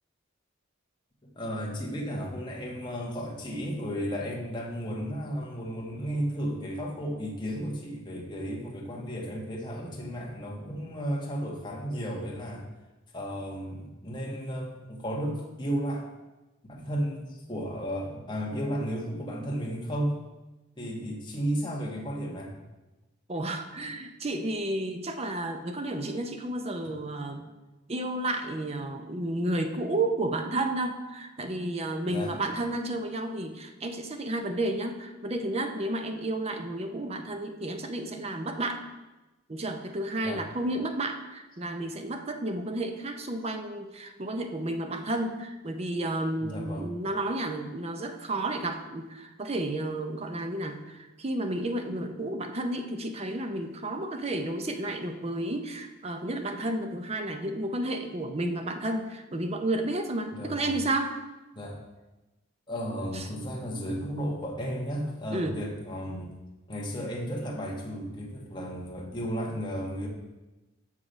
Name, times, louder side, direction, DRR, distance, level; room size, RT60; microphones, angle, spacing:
voice 1, 1.2-12.7 13.1-16.1 16.6-20.1 20.8-22.5 32.1-32.3 40.2-40.4 46.4-46.9 60.3-60.8 61.5-61.8 62.7-66.3 66.7-70.1, equal, 20° left, -1 dB, 1.2 m, -34 dB
voice 2, 23.3-27.5 27.9-38.8 39.5-61.1 63.1-63.2 65.3-65.6, right 1 dB, 30° right, 6 dB, 0.6 m, -32 dB
6.5 x 6.0 x 5.1 m, 1.1 s
head